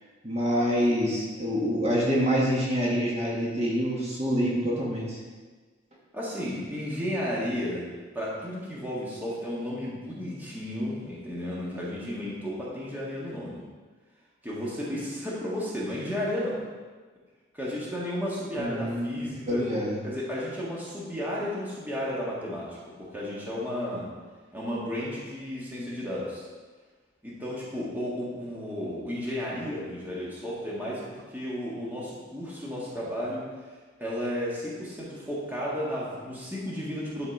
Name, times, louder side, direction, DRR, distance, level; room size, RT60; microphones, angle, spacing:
voice 1, 0.2-5.2 18.6-20.0, equal, 35° right, -5 dB, 1.4 m, -26 dB
voice 2, 6.1-13.6 14.4-16.6 17.5-19.7 20.0-24.1 24.5-26.5 27.2-33.4 34.0-37.3, equal, 10° right, -7 dB, 1.5 m, -33 dB
11.0 x 4.2 x 4.1 m, 1.4 s
head